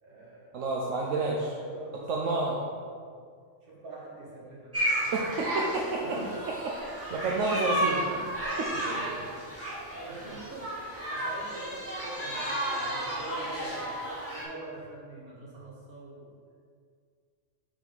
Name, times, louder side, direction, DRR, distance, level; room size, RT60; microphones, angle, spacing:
voice 1, 0.0-0.5 0.9-2.7 3.0-3.2 3.7-5.4 5.7-6.4 8.1-16.3, right 2 dB, 45° right, -6 dB, 1.9 m, -44 dB
voice 2, 0.5-1.5 2.1-2.5 5.1-6.0 7.1-8.1, right 3 dB, 80° right, -2 dB, 1.0 m, -29 dB
sound 1, 4.7-14.4, right 1 dB, 10° right, 1.7 m, -33 dB
5.6 x 4.8 x 5.3 m, 2.1 s
omnidirectional pair, 1.3 m